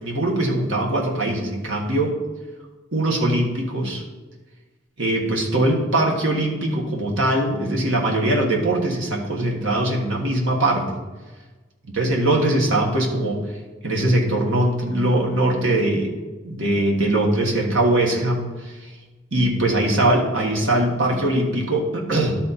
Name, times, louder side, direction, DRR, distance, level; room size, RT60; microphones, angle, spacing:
voice 1, 0.0-2.1 2.9-4.0 5.0-11.0 12.0-13.5 13.8-16.1 16.4-18.9 19.3-22.4, right 1 dB, 75° right, 0 dB, 1.5 m, -21 dB
12.0 x 4.2 x 4.2 m, 1.2 s
head